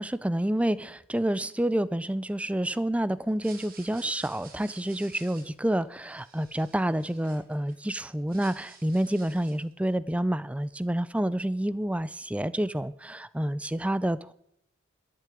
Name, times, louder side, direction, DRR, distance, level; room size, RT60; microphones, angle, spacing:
voice 1, 0.0-14.3, right 1 dB, 5° right, 0.4 m, -28 dB
sound 1, 3.3-7.7 8.1-9.7, right 5 dB, 45° right, 2.4 m, -52 dB
13.5 x 6.7 x 9.0 m
head